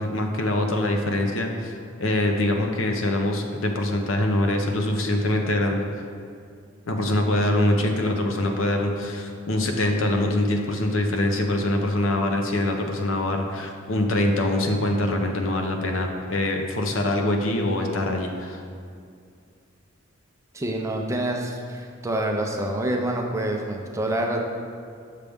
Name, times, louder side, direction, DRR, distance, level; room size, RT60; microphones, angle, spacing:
voice 1, 0.0-5.8 6.9-18.6, left 1 dB, 70° left, 3 dB, 0.7 m, -24 dB
voice 2, 20.5-24.4, right 1 dB, 15° right, 1 dB, 0.5 m, -27 dB
6.7 x 6.4 x 3.5 m, 2.3 s
head